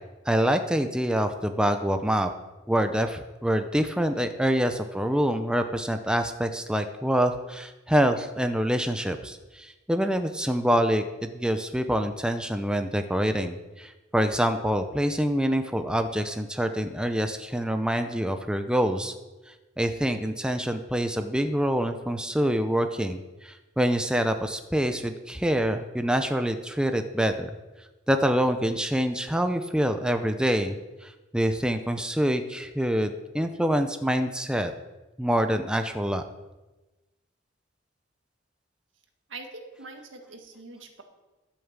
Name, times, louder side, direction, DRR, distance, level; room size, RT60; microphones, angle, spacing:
voice 1, 0.3-2.3 2.7-19.1 19.8-27.5 28.1-34.7 35.2-36.2, equal, 5° right, 7 dB, 0.6 m, -26 dB
voice 2, 39.3-41.0, right 3 dB, 75° right, 5 dB, 1.7 m, -43 dB
12.0 x 7.2 x 7.3 m, 1.1 s
head